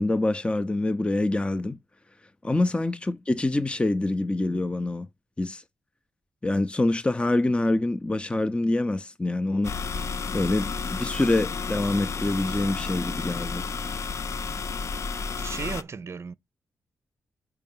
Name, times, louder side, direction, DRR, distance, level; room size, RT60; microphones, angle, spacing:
voice 1, 0.0-1.8 2.4-5.1 5.4-5.6 6.4-9.7 10.3-13.7, left 2 dB, 20° left, 0.6 m, -25 dB
sound 1, 9.6-15.8, left 5 dB, 55° left, 0.5 m, -31 dB
voice 2, 15.4-16.3, right 5 dB, 50° right, 0.5 m, -35 dB
4.6 x 4.5 x 5.4 m
supercardioid pair, 45°, 6 cm